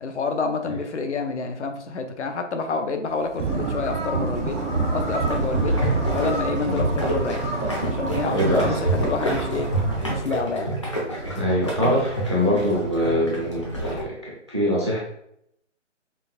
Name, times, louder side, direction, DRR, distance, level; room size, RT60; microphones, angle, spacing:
voice 1, 0.0-4.6 4.9-5.8 6.1-7.4 7.8-9.7 10.1-10.7, left 4 dB, 70° left, 6 dB, 0.7 m, -28 dB
sound 1, 3.1-10.0, left 1 dB, 50° left, 1.1 m, -36 dB
sound 2, 3.3-14.0, right 1 dB, 25° left, 0.6 m, -27 dB
sound 3, 3.4-10.6, right 5 dB, 75° right, 0.6 m, -30 dB
voice 2, 8.2-8.8 11.3-15.0, equal, 25° right, -5 dB, 0.4 m, -24 dB
5.2 x 2.2 x 2.6 m, 0.75 s
hypercardioid pair, 165°, 37 cm